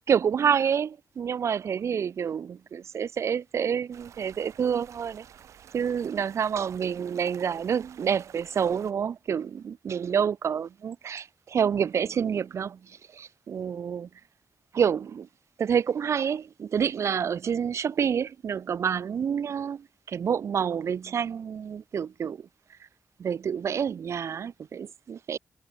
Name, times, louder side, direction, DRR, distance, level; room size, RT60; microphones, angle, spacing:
voice 1, 0.1-5.3 5.7-14.1 14.7-15.3 15.6-22.5 23.2-25.4, right 7 dB, 70° right, 0.5 m, -28 dB
sound 1, 3.9-8.9, right 9 dB, 85° right, 6.5 m, -51 dB
cardioid pair, 50°, 5 cm